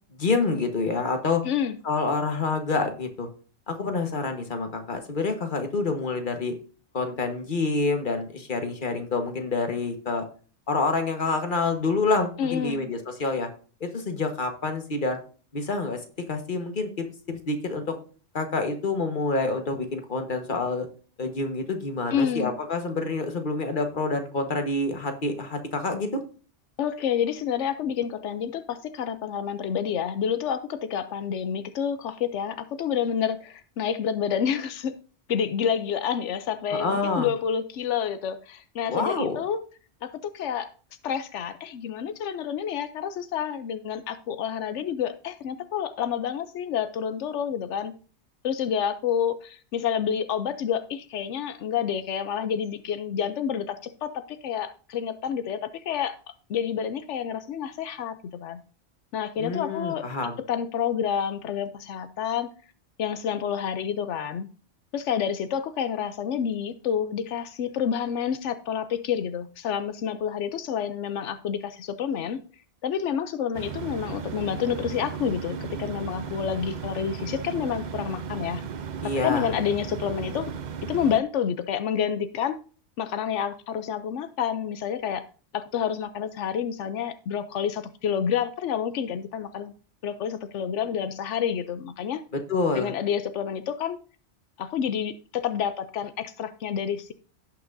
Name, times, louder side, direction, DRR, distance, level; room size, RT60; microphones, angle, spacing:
voice 1, 0.2-1.4 1.8-3.3 3.7-6.5 6.9-10.2 10.7-13.5 13.8-15.2 15.5-16.0 16.3-18.0 18.3-20.9 21.2-26.2 36.8-37.3 38.9-39.4 59.4-60.4 79.0-79.5 92.3-92.9, left 3 dB, 45° left, 6 dB, 1.5 m, -27 dB
voice 2, 1.4-1.8 12.4-12.9 22.1-22.5 26.8-35.0 35.3-39.6 40.0-40.7 41.0-47.9 48.4-58.6 59.1-60.1 60.5-62.5 63.0-64.5 64.9-72.4 72.8-78.6 79.0-80.5 80.8-82.6 83.0-85.2 85.5-89.7 90.0-92.2 92.7-94.0 94.6-97.1, left 8 dB, 90° left, 11 dB, 1.0 m, -29 dB
sound 1, 73.5-81.2, right 7 dB, 50° right, 0.7 m, -35 dB
17.0 x 5.9 x 2.6 m, 0.39 s
omnidirectional pair, 1.2 m